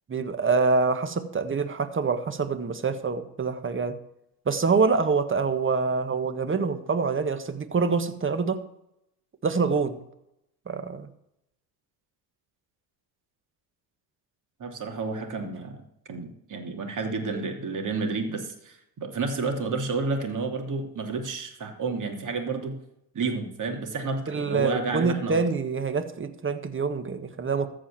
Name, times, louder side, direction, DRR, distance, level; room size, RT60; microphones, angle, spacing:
voice 1, 0.1-4.0 4.4-8.6 9.4-10.0 10.7-11.1 24.3-27.7, right 4 dB, 25° right, 9 dB, 1.5 m, -26 dB
voice 2, 14.6-15.8 16.1-22.7 23.1-25.3, right 4 dB, 40° right, 3 dB, 3.0 m, -30 dB
14.5 x 5.0 x 7.7 m, 0.80 s
supercardioid pair, 75°, 46 cm